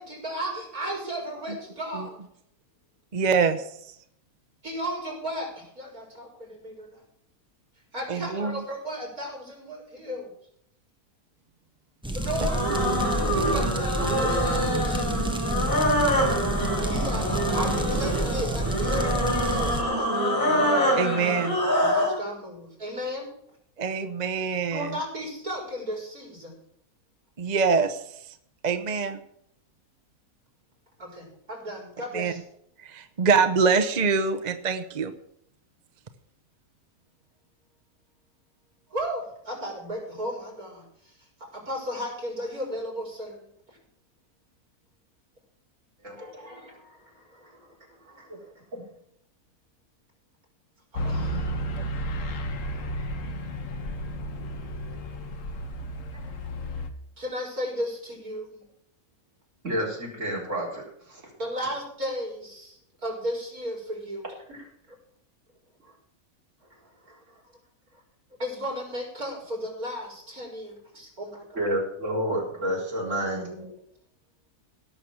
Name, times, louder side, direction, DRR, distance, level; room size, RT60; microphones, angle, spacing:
voice 1, 0.0-2.2 4.6-7.0 7.9-10.3 12.1-12.6 13.3-15.2 16.8-20.2 21.8-23.3 24.7-26.6 31.0-32.4 38.9-43.5 46.2-48.5 50.9-51.5 56.4-56.5 57.2-58.6 61.4-65.0 65.8-65.9 66.7-67.4 68.4-71.6 73.3-73.7, equal, 75° right, 0 dB, 5.3 m, -35 dB
voice 2, 3.1-3.6 8.1-8.6 12.8-13.1 21.0-21.6 23.8-24.9 27.4-28.0 28.6-29.2 32.1-32.3 32.8-35.1, right 5 dB, 35° right, 8 dB, 0.8 m, -24 dB
sound 1, 12.0-19.8, right 1 dB, 5° right, 1.1 m, -29 dB
sound 2, 12.3-22.2, equal, 35° left, 4.6 m, -25 dB
sound 3, 51.0-56.9, equal, 60° left, 1.4 m, -32 dB
voice 3, 59.6-60.8 61.1-61.2 71.5-73.5, equal, 55° right, -3 dB, 4.5 m, -29 dB
17.0 x 6.5 x 7.2 m, 0.71 s
omnidirectional pair, 1.5 m